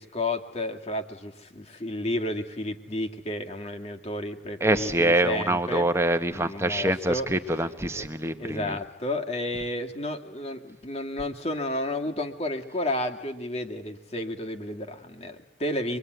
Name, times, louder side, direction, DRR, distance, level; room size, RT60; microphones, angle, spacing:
voice 1, 0.0-5.9 6.3-7.3 7.9-8.0 8.4-16.0, left 1 dB, 35° left, 4 dB, 2.2 m, -32 dB
voice 2, 4.6-8.8, right 1 dB, 15° right, 8 dB, 1.4 m, -25 dB
25.5 x 23.0 x 9.4 m, 0.88 s
head